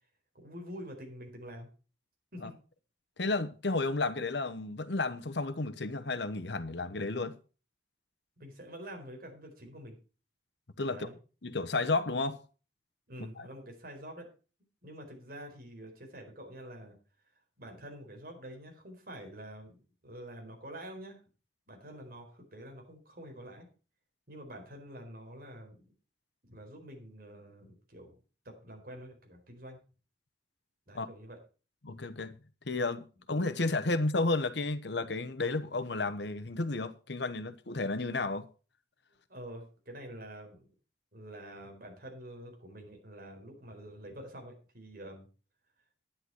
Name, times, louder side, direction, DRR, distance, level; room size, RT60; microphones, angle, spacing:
voice 1, 0.3-1.7 2.3-2.6 8.4-10.0 10.9-11.2 13.1-14.3 14.8-17.0 17.6-21.2 21.7-23.7 24.3-25.9 26.4-28.2 28.4-29.8 30.9-31.4 39.3-40.7 41.1-45.3, equal, 55° right, 4.5 m, -47 dB
voice 2, 3.2-7.3 10.8-11.1 11.4-12.4 13.4-13.5 30.9-31.1 31.8-32.3 32.7-38.5, left 3 dB, 70° left, 1.1 m, -32 dB
11.0 x 10.0 x 4.6 m
head